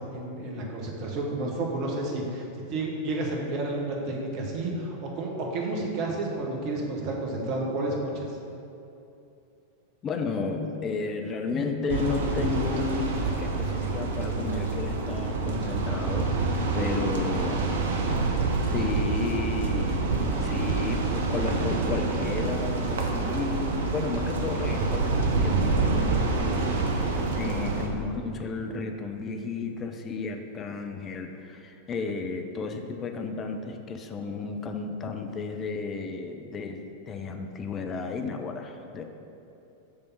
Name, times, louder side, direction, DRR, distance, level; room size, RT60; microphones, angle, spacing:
voice 1, 0.1-2.4 2.7-8.4, right 2 dB, 40° right, -1 dB, 1.1 m, -31 dB
voice 2, 10.0-16.3 16.7-17.7 18.7-36.8 37.1-39.0, left 4 dB, 25° left, 5 dB, 0.5 m, -33 dB
sound 1, 11.9-27.9, right 3 dB, 60° right, 0.7 m, -27 dB
6.6 x 3.4 x 5.5 m, 2.8 s
figure-of-eight pair, 90°, 0 cm